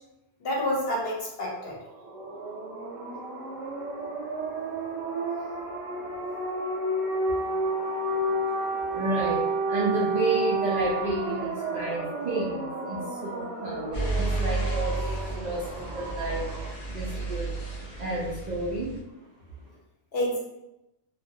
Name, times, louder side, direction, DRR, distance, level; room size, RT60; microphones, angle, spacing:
voice 1, 0.4-1.8 8.2-8.3 20.1-20.4, equal, 60° left, -3 dB, 0.8 m, -28 dB
sound 1, 1.9-16.7, right 2 dB, 85° right, 1.0 m, -31 dB
voice 2, 8.7-14.9 15.3-15.7 15.9-16.5 16.9-17.5 18.0-18.9, right 2 dB, 70° right, -6 dB, 0.4 m, -31 dB
sound 2, 13.9-19.0, right 2 dB, 85° left, 0.3 m, -32 dB
2.3 x 2.1 x 2.7 m, 0.90 s
omnidirectional pair, 1.3 m